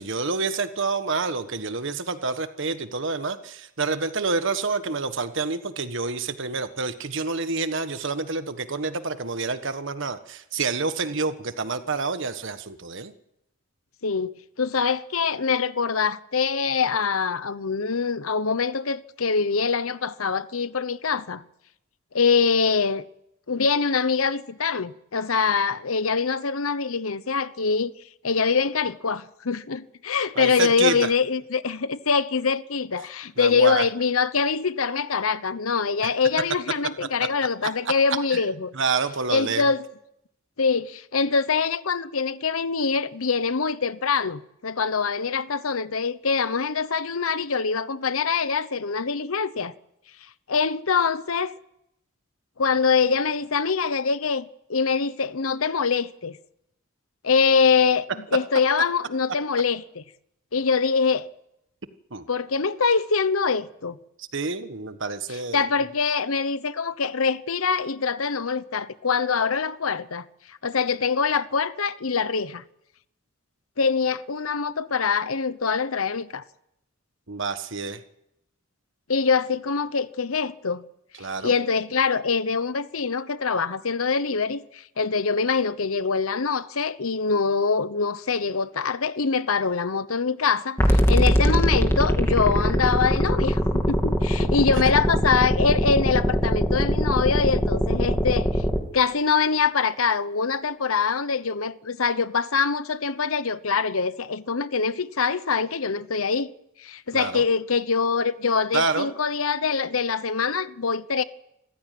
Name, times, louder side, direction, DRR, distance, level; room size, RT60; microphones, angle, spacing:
voice 1, 0.0-13.1 30.3-31.1 33.4-33.8 36.0-36.1 37.6-37.7 38.3-38.4 38.7-39.6 62.1-62.2 64.2-65.6 77.3-78.0 81.2-81.5 107.1-107.4 108.7-109.1, right 4 dB, 60° right, 1.4 m, -28 dB
voice 2, 14.0-21.4 22.1-23.1 23.5-27.9 28.2-38.7 39.3-39.8 40.6-49.7 50.5-51.5 52.6-56.4 57.2-60.0 60.5-61.3 62.3-64.0 65.3-72.6 73.8-76.4 79.1-80.8 81.4-98.5 98.9-106.5 106.8-111.2, left 5 dB, 90° left, 1.0 m, -24 dB
sound 1, 90.8-98.8, equal, 15° left, 2.8 m, -22 dB
26.5 x 15.5 x 9.4 m
head